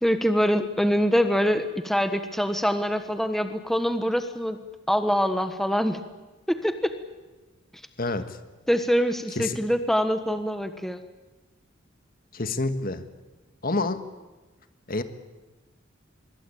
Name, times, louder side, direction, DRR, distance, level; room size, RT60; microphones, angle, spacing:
voice 1, 0.0-4.6 4.9-6.0 6.5-6.9 8.7-11.0, equal, ahead, 8 dB, 1.3 m, -24 dB
voice 2, 8.0-8.4 9.3-9.7 12.3-13.1 13.6-14.0 14.9-15.0, left 2 dB, 45° left, 10 dB, 1.7 m, -28 dB
25.5 x 22.0 x 8.7 m, 1.2 s
head